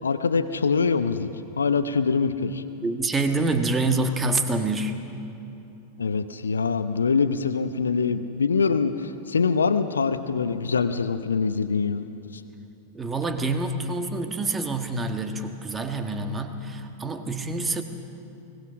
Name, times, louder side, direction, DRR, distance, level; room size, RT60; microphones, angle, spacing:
voice 1, 0.0-1.3 1.6-2.6 6.0-12.1 12.3-12.4, left 5 dB, 70° left, 10 dB, 0.8 m, -24 dB
voice 2, 2.8-5.0 12.9-17.8, right 2 dB, 15° right, 6 dB, 1.6 m, -26 dB
22.5 x 19.0 x 6.2 m, 2.8 s
figure-of-eight pair, 90°, 0 cm